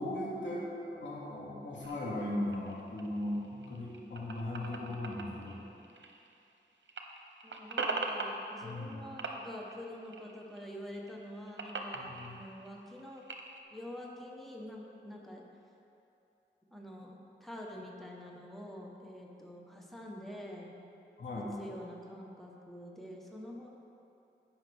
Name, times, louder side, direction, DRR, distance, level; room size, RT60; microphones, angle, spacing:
voice 1, 0.0-5.6 8.6-9.0 11.9-12.4 21.2-21.5, left 1 dB, 80° left, -7 dB, 2.2 m, -38 dB
sound 1, 1.8-6.6 6.8-8.9 9.2-10.7 11.0-13.6, right 3 dB, 80° right, 0.8 m, -41 dB
voice 2, 7.4-13.2 13.7-15.5 16.7-20.8 21.3-23.7, equal, ahead, -2 dB, 1.2 m, -46 dB
15.5 x 5.7 x 3.6 m, 2.8 s
wide cardioid pair, 55°, 19 cm